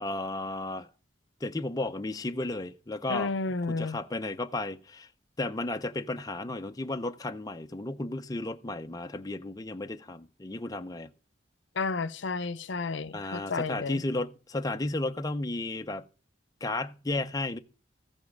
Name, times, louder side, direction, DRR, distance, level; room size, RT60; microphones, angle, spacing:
voice 1, 0.0-0.9 1.4-3.3 3.7-5.1 5.4-11.1 13.1-16.0 16.6-17.6, left 2 dB, 20° left, 0.5 m, -33 dB
voice 2, 3.1-4.0 11.8-14.0, left 4 dB, 75° left, 0.6 m, -31 dB
14.5 x 5.4 x 6.3 m
head